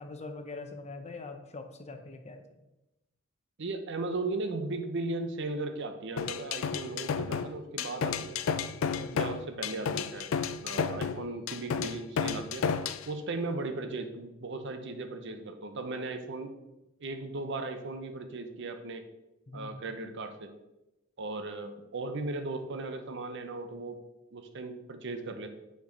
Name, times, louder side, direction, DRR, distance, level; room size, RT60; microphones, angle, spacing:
voice 1, 0.0-2.6 6.8-7.2 8.9-9.2 19.5-19.8, left 3 dB, 30° left, 6 dB, 0.7 m, -43 dB
voice 2, 3.6-8.4 9.1-10.3 10.6-12.6 13.1-16.5 17.0-19.0 19.5-20.5 21.2-24.0 24.3-25.5, right 2 dB, 60° right, 8 dB, 0.7 m, -37 dB
sound 1, 6.2-13.1, left 6 dB, 75° left, 0.4 m, -32 dB
5.7 x 4.5 x 5.1 m, 0.95 s
head